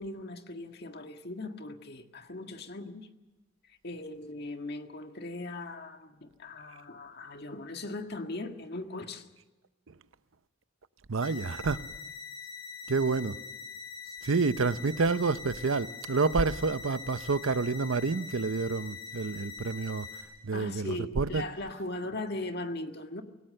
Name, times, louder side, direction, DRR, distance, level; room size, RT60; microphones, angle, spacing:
voice 1, 0.0-3.1 3.6-9.3 14.1-14.2 20.5-23.2, left 2 dB, 55° left, 1.8 m, -39 dB
voice 2, 11.1-11.9 12.9-13.4 14.2-20.1 20.4-21.4, right 4 dB, 80° right, 0.7 m, -28 dB
sound 1, 11.2-20.2, left 5 dB, 25° left, 6.3 m, -43 dB
25.5 x 18.0 x 6.7 m
head